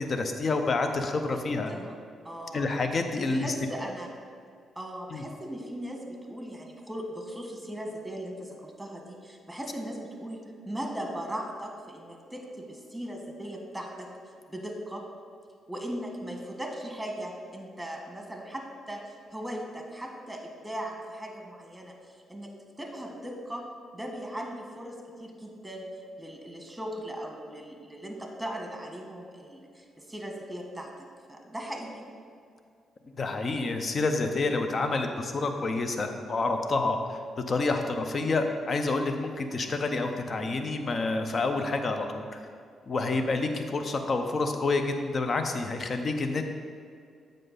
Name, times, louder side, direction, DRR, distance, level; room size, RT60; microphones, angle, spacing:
voice 1, 0.0-1.7 2.5-3.5 5.1-5.2 33.2-37.2 37.5-42.4 42.9-46.4, left 3 dB, 45° left, 6 dB, 0.7 m, -28 dB
voice 2, 2.2-2.7 3.2-4.1 4.7-10.4 10.6-14.1 14.5-15.0 15.7-22.5 22.8-23.7 23.9-25.8 26.2-30.9 31.3-32.0, equal, 5° right, 2 dB, 1.4 m, -38 dB
7.6 x 5.1 x 4.0 m, 2.3 s
hypercardioid pair, 40°, 0 cm